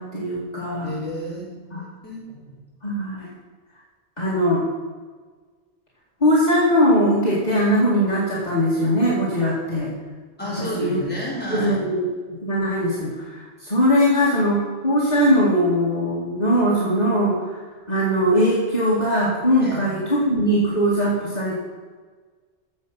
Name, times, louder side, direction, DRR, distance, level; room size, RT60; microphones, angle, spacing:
voice 1, 0.0-0.9 1.7-1.8 2.8-3.2 4.2-4.6 6.2-9.9 10.4-11.0 11.5-12.1 12.4-17.5 17.9-21.6, equal, 40° left, -7 dB, 2.4 m, -20 dB
voice 2, 0.8-1.4 1.7-2.2 10.4-11.8 19.6-19.8, equal, 10° left, -7 dB, 4.4 m, -30 dB
15.0 x 7.2 x 5.5 m, 1.5 s
omnidirectional pair, 1.1 m